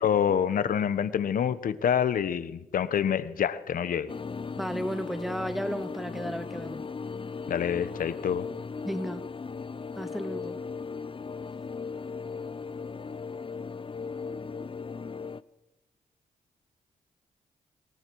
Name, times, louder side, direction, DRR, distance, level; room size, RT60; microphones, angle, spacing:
voice 1, 0.0-4.1 7.5-8.5, left 8 dB, 70° left, 14 dB, 1.2 m, -27 dB
sound 1, 4.1-15.4, left 5 dB, 35° left, 0.8 m, -37 dB
voice 2, 4.6-6.9 8.8-9.2 10.0-10.6 14.3-14.6, equal, ahead, 8 dB, 2.4 m, -34 dB
27.5 x 21.5 x 4.8 m, 0.95 s
cardioid pair, 60°, 15 cm